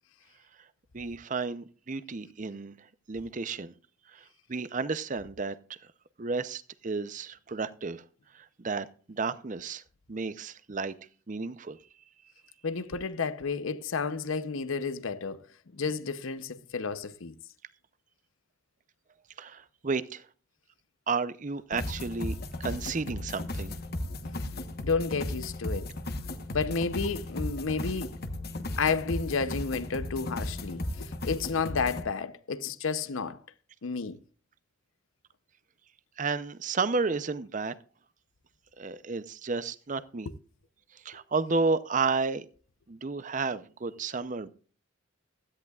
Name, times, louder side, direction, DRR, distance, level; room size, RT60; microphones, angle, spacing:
voice 1, 0.9-3.7 4.1-5.8 6.2-8.0 8.3-9.8 10.1-10.9 11.3-11.8 19.4-20.3 21.1-23.7 36.2-37.7 38.8-40.3 40.9-42.5 42.9-44.5, right 4 dB, 40° right, 0.6 m, -32 dB
voice 2, 12.6-15.4 15.7-17.3 24.2-24.4 24.8-25.9 26.5-28.1 28.8-33.4 33.8-34.2, left 5 dB, 75° left, 0.7 m, -31 dB
sound 1, 21.7-32.0, left 1 dB, 50° left, 1.0 m, -35 dB
16.0 x 13.0 x 2.4 m
head